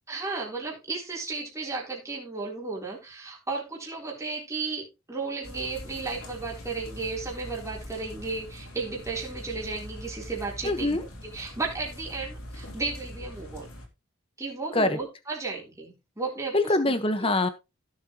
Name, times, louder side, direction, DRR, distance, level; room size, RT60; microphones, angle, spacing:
voice 1, 0.1-11.0 11.3-13.7 14.4-16.9, right 3 dB, 15° right, -3 dB, 3.6 m, -34 dB
sound 1, 5.4-13.9, equal, 85° left, 3.0 m, -42 dB
voice 2, 10.6-11.0 14.7-15.0 16.5-17.5, left 2 dB, 25° left, 10 dB, 1.3 m, -24 dB
16.0 x 7.4 x 3.1 m, 0.27 s
head